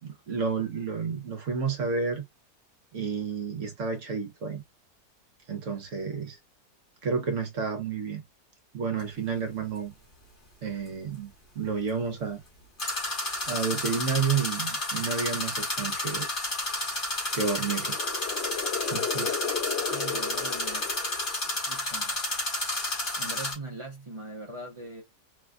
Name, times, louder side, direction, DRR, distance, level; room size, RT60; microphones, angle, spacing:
voice 1, 0.0-2.2 2.9-4.6 5.5-6.4 7.0-8.2 8.7-9.9 10.6-12.4 13.5-16.3 17.3-18.0 18.9-19.3, right 5 dB, 60° right, 1.1 m, -30 dB
sound 1, 9.0-9.1 12.8-23.5, left 1 dB, 35° left, 1.3 m, -31 dB
sound 2, 17.3-21.5, left 7 dB, 50° left, 0.8 m, -35 dB
voice 2, 19.9-20.9 21.7-22.1 23.2-25.0, right 2 dB, 30° right, 0.6 m, -41 dB
3.2 x 2.3 x 2.3 m
omnidirectional pair, 1.7 m